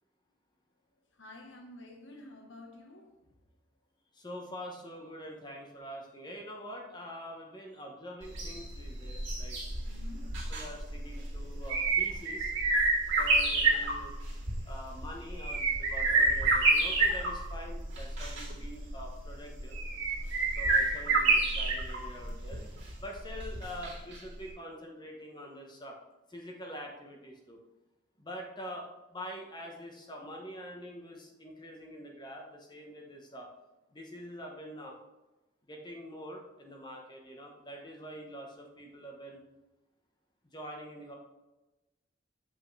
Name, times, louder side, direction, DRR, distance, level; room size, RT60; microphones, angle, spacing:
voice 1, 1.2-3.1 9.8-10.3, left 2 dB, 65° left, 2 dB, 1.2 m, -50 dB
voice 2, 4.1-9.6 10.5-12.5 13.2-14.1 14.6-19.8 20.6-22.6 23.0-26.0 26.3-27.6 28.2-33.5 33.9-35.0 35.7-39.4 40.5-41.1, equal, 20° left, 0 dB, 1.0 m, -45 dB
sound 1, 8.2-24.2 24.5-24.6, right 3 dB, 65° right, 2.3 m, -29 dB
8.1 x 5.5 x 3.2 m, 1.1 s
head